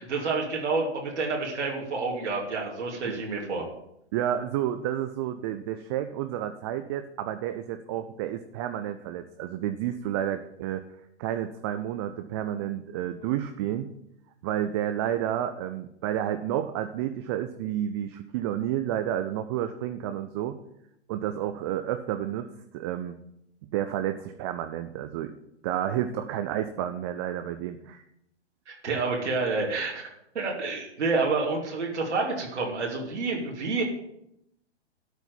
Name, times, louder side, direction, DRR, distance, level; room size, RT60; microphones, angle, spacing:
voice 1, 0.0-3.6 28.7-33.8, right 3 dB, 80° right, -2 dB, 2.9 m, -29 dB
voice 2, 4.1-10.8 11.2-13.9 14.4-20.6 21.1-22.5 22.7-23.2 23.6-25.3 25.6-28.0, right 11 dB, 25° right, 8 dB, 0.4 m, -30 dB
12.5 x 4.4 x 8.1 m, 0.79 s
hypercardioid pair, 130°, 35 cm